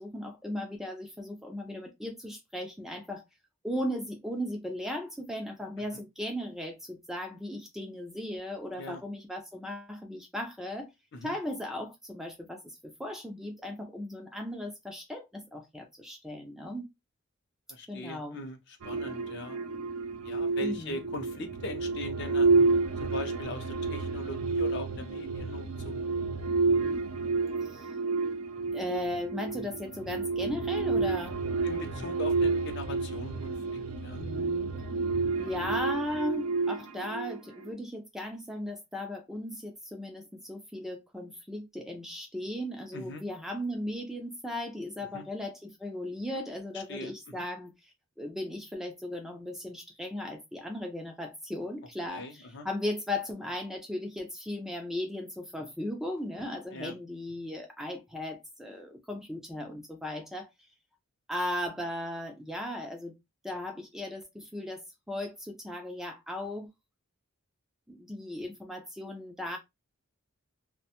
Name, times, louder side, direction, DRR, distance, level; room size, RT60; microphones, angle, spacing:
voice 1, 0.0-3.2 3.6-10.9 11.2-16.9 17.9-18.4 20.6-21.0 27.6-27.9 28.7-31.4 34.2-34.7 35.4-47.7 48.2-60.7 61.3-63.2 63.4-66.7 67.9-69.6, left 1 dB, ahead, 0.3 m, -37 dB
voice 2, 17.7-19.6 20.2-22.5 23.0-26.0 31.6-34.2 42.9-43.2 45.1-45.2 46.7-47.5 52.1-52.7 56.7-57.0, left 1 dB, 55° left, 0.5 m, -41 dB
sound 1, 18.8-37.7, right 3 dB, 80° right, 0.5 m, -30 dB
2.4 x 2.1 x 2.8 m
head